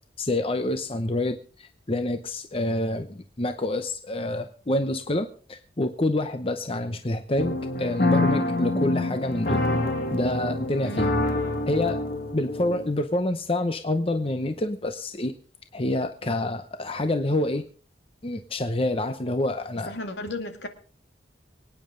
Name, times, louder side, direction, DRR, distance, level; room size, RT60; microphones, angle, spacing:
voice 1, 0.2-9.6 10.1-11.1 11.7-12.0 12.3-15.3 15.7-17.6 18.2-19.9, left 1 dB, 30° left, 8 dB, 0.8 m, -27 dB
sound 1, 7.4-13.0, left 2 dB, 50° left, 1.8 m, -26 dB
voice 2, 10.8-11.2 19.9-20.7, left 1 dB, 75° left, 6 dB, 2.2 m, -34 dB
25.0 x 9.5 x 3.8 m, 0.42 s
head